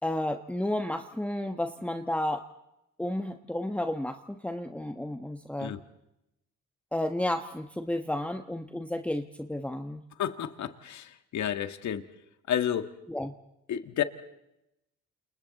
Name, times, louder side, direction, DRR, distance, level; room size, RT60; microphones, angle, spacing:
voice 1, 0.0-2.5 3.0-5.8 6.9-10.0 13.1-13.4, left 1 dB, 5° left, 6 dB, 1.2 m, -32 dB
voice 2, 10.2-12.1 12.5-12.9 13.7-14.0, left 10 dB, 70° left, 10 dB, 1.7 m, -31 dB
29.5 x 28.5 x 4.1 m, 0.87 s
cardioid pair, 90°, 30 cm